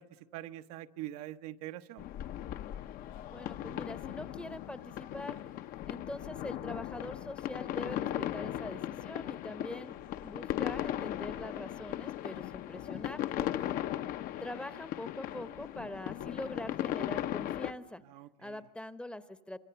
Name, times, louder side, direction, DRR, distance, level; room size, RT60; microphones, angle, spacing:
voice 1, 0.0-2.1 13.4-13.8 18.0-18.6, right 14 dB, 70° right, 8 dB, 1.0 m, -45 dB
sound 1, 2.0-17.7, left 12 dB, 45° left, 0.8 m, -37 dB
voice 2, 3.3-5.4 5.8-13.2 14.4-18.0 18.4-19.6, left 1 dB, 5° left, 12 dB, 0.9 m, -43 dB
26.0 x 24.0 x 6.9 m, 0.96 s
supercardioid pair, 120°, 20 cm